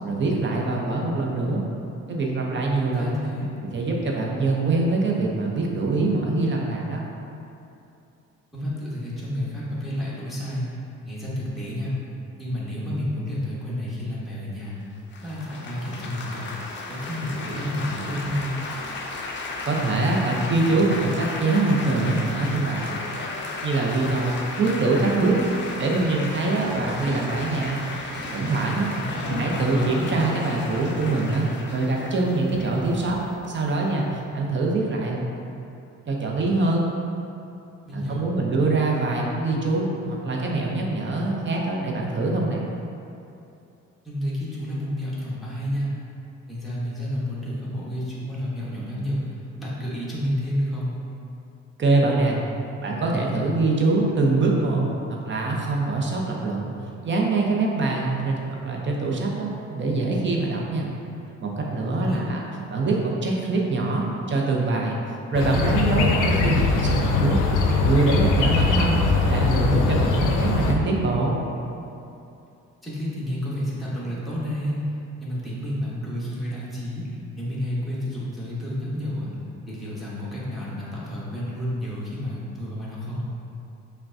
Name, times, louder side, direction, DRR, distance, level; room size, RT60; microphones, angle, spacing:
voice 1, 0.0-1.6 2.1-3.1 3.7-7.0 19.6-23.0 23.6-25.4 25.8-27.8 28.3-28.9 29.2-33.2 33.5-35.2 35.6-35.7 36.1-36.8 37.9-42.6 51.8-52.4 52.8-56.7 57.0-60.9 61.4-62.4 62.7-65.0 65.3-67.4 67.8-71.4, right 3 dB, 40° right, -2 dB, 0.6 m, -24 dB
voice 2, 2.9-3.5 8.5-10.8 11.0-12.0 12.4-14.9 15.2-16.5 16.9-18.6 28.9-29.4 37.8-38.3 44.0-46.0 46.5-51.0 61.9-62.2 72.8-83.3, equal, ahead, -9 dB, 1.1 m, -30 dB
Laughter / Applause / Chatter, 15.1-34.2, left 3 dB, 40° left, 0.5 m, -34 dB
sound 1, 25.4-31.5, right 1 dB, 80° right, 0.7 m, -39 dB
sound 2, 65.3-70.7, left 4 dB, 90° left, 0.5 m, -21 dB
5.7 x 2.2 x 2.6 m, 2.7 s
cardioid pair, 90°, 30 cm